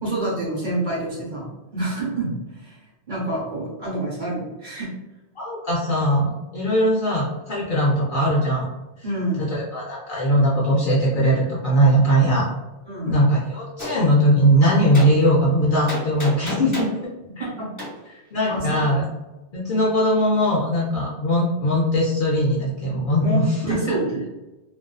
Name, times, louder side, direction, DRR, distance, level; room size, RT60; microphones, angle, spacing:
voice 1, 0.0-1.5 1.7-4.9 9.0-9.6 12.8-13.2 17.4-17.7 18.5-18.9 23.2-24.2, right 2 dB, 45° right, -7 dB, 1.1 m, -27 dB
voice 2, 5.4-8.7 9.4-12.5 13.1-16.9 17.4-17.5 18.3-19.0 19.5-23.7, equal, 60° left, -5 dB, 0.6 m, -20 dB
Gunshot gunfire, 13.8-14.0 14.9-15.1 15.9-17.0 17.8-17.9, equal, 25° left, 1.2 m, -30 dB
2.5 x 2.4 x 2.3 m, 1.1 s
omnidirectional pair, 1.2 m